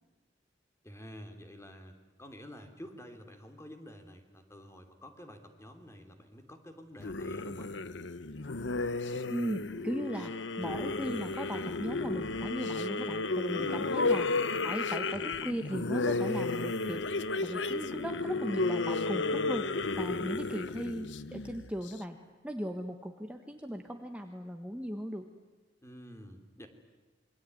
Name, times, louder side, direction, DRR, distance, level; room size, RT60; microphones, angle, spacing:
voice 1, 0.8-7.7 13.6-13.9 25.8-26.7, equal, 15° left, 7 dB, 3.0 m, -49 dB
sound 1, 7.0-21.9, left 3 dB, 80° left, 1.0 m, -33 dB
voice 2, 9.3-14.3 14.6-17.0 17.4-22.2 22.4-25.3, equal, 5° right, 4 dB, 1.4 m, -38 dB
27.0 x 23.0 x 9.4 m, 1.1 s
head